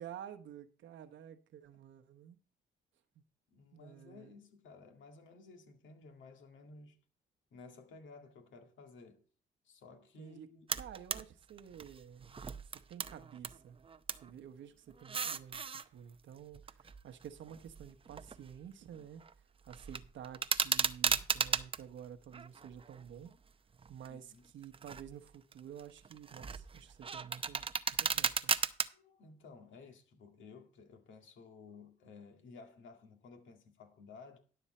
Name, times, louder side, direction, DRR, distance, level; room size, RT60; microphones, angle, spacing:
voice 1, 0.0-2.4 3.7-4.3 10.2-10.5 10.8-12.4 12.9-13.8 14.2-19.2 19.7-23.3 23.9-27.6 28.0-28.5, right 9 dB, 70° right, 1.1 m, -51 dB
voice 2, 3.5-7.0 7.5-9.2 9.6-10.7 24.1-24.5 28.9-34.4, left 4 dB, 75° left, 2.1 m, -55 dB
sound 1, 10.7-11.2 11.6-13.6 13.8-14.3 14.9-15.8 16.5-18.6 18.9-19.3 19.7-21.8 22.3-23.3 23.8-24.1 24.6-25.1 25.5-28.9, right 5 dB, 25° right, 0.6 m, -36 dB
11.5 x 7.1 x 4.3 m
cardioid pair, 90°, 20 cm